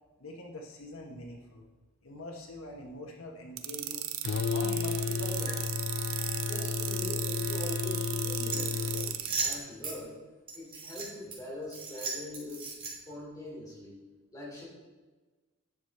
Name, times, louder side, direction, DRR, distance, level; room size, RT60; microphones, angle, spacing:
voice 1, 0.2-1.7 2.0-4.1 4.5-5.8, left 1 dB, 80° left, 2 dB, 1.2 m, -43 dB
sound 1, 3.6-9.5, right 13 dB, 80° right, 0.7 m, -35 dB
sound 2, 4.2-9.2, left 6 dB, 55° left, 0.3 m, -33 dB
voice 2, 6.5-10.2 10.5-12.7 13.1-14.0 14.3-14.7, left 1 dB, 15° left, -5 dB, 3.1 m, -43 dB
sound 3, 8.5-10.0 10.5-11.4 11.7-13.2, right 4 dB, 25° right, 2.3 m, -36 dB
9.9 x 6.6 x 4.3 m, 1.3 s
head